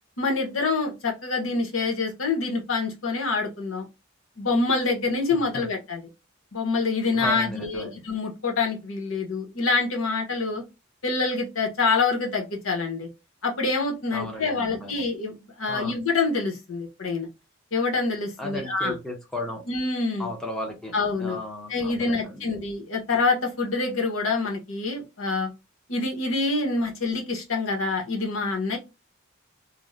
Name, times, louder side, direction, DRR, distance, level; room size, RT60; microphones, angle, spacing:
voice 1, 0.2-3.8 4.4-6.0 6.5-10.6 11.0-13.1 13.4-17.3 17.7-18.9 19.7-20.3 20.9-21.4 21.7-25.5 25.9-28.8, left 3 dB, 85° left, 2 dB, 0.9 m, -26 dB
voice 2, 5.3-5.6 7.1-8.0 14.1-15.0 15.7-16.0 18.4-19.6 20.2-22.6, left 1 dB, 5° left, 0 dB, 0.7 m, -35 dB
2.5 x 2.0 x 3.1 m, 0.24 s
head